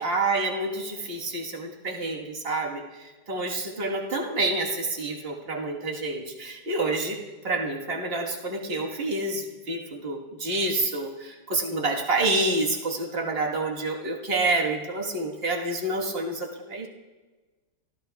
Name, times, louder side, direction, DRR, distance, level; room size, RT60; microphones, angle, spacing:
voice 1, 0.0-16.9, right 2 dB, 40° right, 1 dB, 1.7 m, -28 dB
26.5 x 14.5 x 2.3 m, 1.2 s
omnidirectional pair, 1.7 m